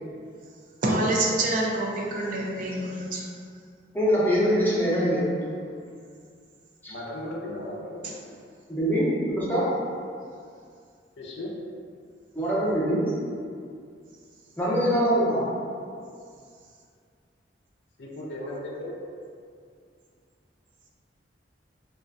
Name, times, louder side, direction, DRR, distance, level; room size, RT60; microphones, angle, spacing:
voice 1, 0.8-3.2, right 1 dB, 50° right, -3 dB, 0.4 m, -26 dB
voice 2, 3.9-5.3 6.8-6.9 8.7-9.7 12.3-13.0 14.6-15.5, equal, 10° left, -9 dB, 0.6 m, -23 dB
voice 3, 6.9-8.1 11.2-11.5 18.0-18.9, left 1 dB, 70° left, -3 dB, 0.4 m, -36 dB
2.4 x 2.1 x 2.5 m, 2.2 s
head